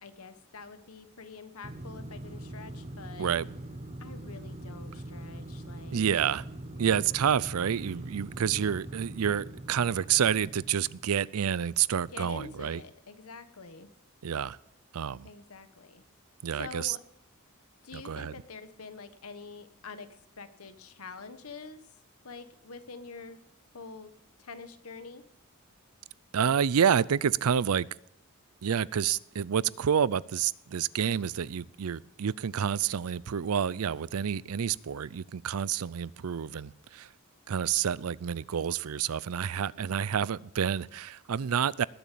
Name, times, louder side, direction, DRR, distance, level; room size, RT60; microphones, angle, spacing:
voice 1, 0.0-3.3 4.0-6.0 6.8-7.2 12.1-13.9 15.2-16.0 16.5-17.0 17.8-20.1 20.4-21.8 22.2-23.4 23.7-24.1 24.4-25.2, left 4 dB, 85° left, 1.3 m, -46 dB
sound 1, 1.6-11.4, right 1 dB, 30° right, 0.9 m, -43 dB
voice 2, 3.2-3.5 5.9-6.4 6.8-12.8 14.2-14.6 14.9-15.3 16.4-17.0 17.9-18.3 26.3-27.9 28.6-37.1 37.5-41.9, right 8 dB, 85° right, 0.5 m, -28 dB
20.0 x 7.0 x 8.4 m
head